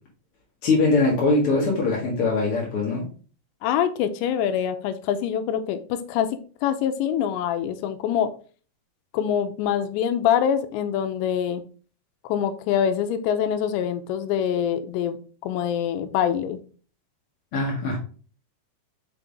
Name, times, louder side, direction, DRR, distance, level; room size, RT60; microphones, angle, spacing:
voice 1, 0.6-3.1 17.5-18.0, left 3 dB, 65° left, -3 dB, 1.3 m, -22 dB
voice 2, 3.6-8.3 9.1-11.6 12.2-15.2 15.4-16.6, left 9 dB, 90° left, 9 dB, 2.9 m, -25 dB
5.8 x 5.4 x 3.5 m, 0.40 s
omnidirectional pair, 5.1 m